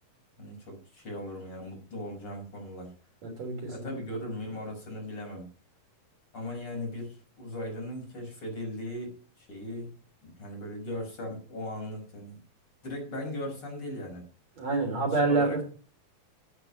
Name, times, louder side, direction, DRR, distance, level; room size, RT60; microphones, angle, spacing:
voice 1, 0.4-2.9 3.7-5.5 6.3-9.9 10.2-12.4 12.8-14.2 15.1-15.6, left 1 dB, 35° left, 0 dB, 6.3 m, -38 dB
voice 2, 3.2-3.9 14.6-15.6, right 3 dB, 50° right, 1 dB, 4.7 m, -27 dB
13.0 x 9.1 x 5.5 m, 0.38 s
omnidirectional pair, 4.1 m